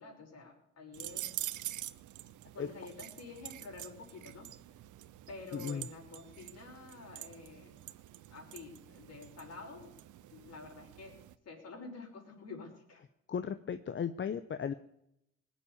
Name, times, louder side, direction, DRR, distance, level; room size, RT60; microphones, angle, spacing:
voice 1, 0.0-1.3 2.5-4.5 5.3-7.8 8.3-9.9 10.3-11.2 11.4-13.0, left 3 dB, 55° left, 1 dB, 5.5 m, -49 dB
sound 1, 0.9-11.3, right 14 dB, 80° right, 0.8 m, -46 dB
voice 2, 5.5-5.9 13.3-14.7, left 7 dB, 40° left, 11 dB, 0.8 m, -36 dB
19.5 x 7.4 x 8.5 m, 0.80 s
cardioid pair, 90°, 30 cm